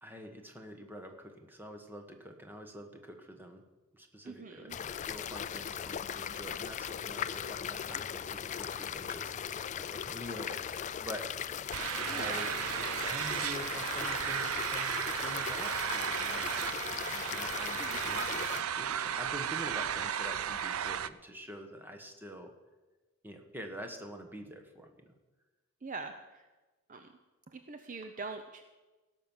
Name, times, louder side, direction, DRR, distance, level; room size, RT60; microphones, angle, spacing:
voice 1, 0.0-3.6 3.9-11.3 12.0-12.5 13.1-16.5 16.9-22.5 23.2-25.1, equal, 10° right, 4 dB, 1.3 m, -46 dB
voice 2, 4.2-4.8 12.1-12.4 17.8-18.3 25.8-26.1 26.9-27.1 27.5-28.6, right 4 dB, 40° right, 7 dB, 0.6 m, -43 dB
sound 1, 4.7-18.6, left 8 dB, 35° left, 0.3 m, -38 dB
sound 2, 11.7-21.1, right 9 dB, 80° right, 0.5 m, -34 dB
17.0 x 6.2 x 7.2 m, 1.2 s
head